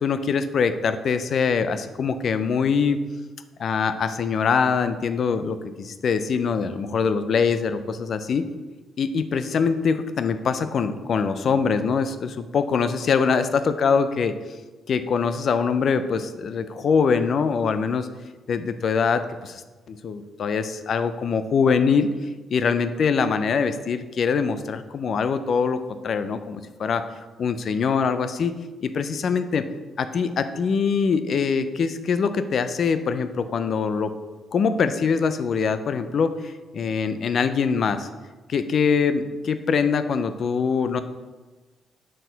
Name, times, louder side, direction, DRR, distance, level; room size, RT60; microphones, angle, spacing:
voice 1, 0.0-3.0 3.6-8.5 9.0-14.3 14.9-18.1 18.5-19.6 19.9-22.1 22.5-27.0 27.4-28.5 28.8-29.6 30.0-34.1 34.5-36.3 36.7-38.1 38.5-41.0, left 5 dB, 50° left, 11 dB, 0.4 m, -23 dB
6.2 x 4.3 x 3.9 m, 1.2 s
cardioid pair, 125°, 0 cm